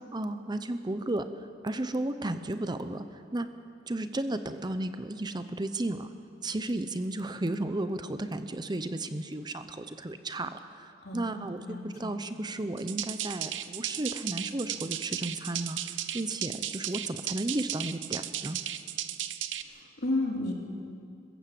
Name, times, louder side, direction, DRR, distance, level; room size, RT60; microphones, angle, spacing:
voice 1, 0.1-1.3 1.6-3.5 3.9-6.1 6.4-15.8 16.1-18.6, right 1 dB, 25° right, 10 dB, 0.7 m, -33 dB
voice 2, 11.0-12.2 19.6-20.5, left 2 dB, 60° left, 0 dB, 3.1 m, -33 dB
sound 1, 12.8-19.6, right 11 dB, 85° right, 0.8 m, -35 dB
22.0 x 15.0 x 7.7 m, 2.4 s
head